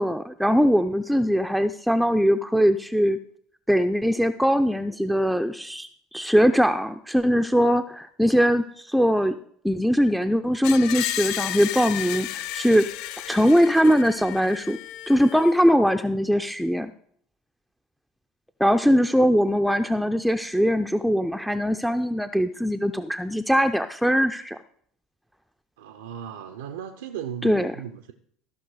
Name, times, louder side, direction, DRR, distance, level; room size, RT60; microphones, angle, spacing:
voice 1, 0.0-3.2 3.7-9.3 9.6-12.8 13.3-14.8 15.1-16.9 18.6-24.6 27.4-27.7, equal, ahead, 7 dB, 0.5 m, -21 dB
Screech, 10.6-15.6, left 13 dB, 65° left, 0.4 m, -33 dB
voice 2, 25.8-28.1, right 9 dB, 80° right, 6 dB, 0.6 m, -36 dB
14.5 x 5.9 x 4.8 m, 0.62 s
hypercardioid pair, 70°, 0 cm